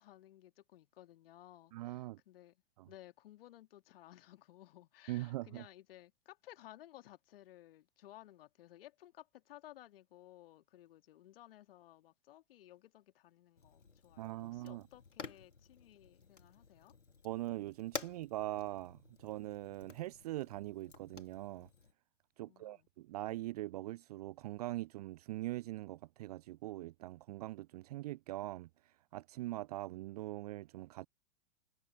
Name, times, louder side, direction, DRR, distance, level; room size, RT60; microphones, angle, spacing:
voice 1, 0.0-16.9 22.4-22.9, left 14 dB, 50° left, 2.3 m, -58 dB
voice 2, 1.7-2.2 2.8-2.9 5.1-5.6 14.2-14.8 17.2-21.7 22.4-28.7 29.1-31.1, right 16 dB, 35° right, 0.5 m, -42 dB
Fire, 13.6-21.9, left 4 dB, 80° left, 3.0 m, -51 dB
figure-of-eight pair, 105°, 36 cm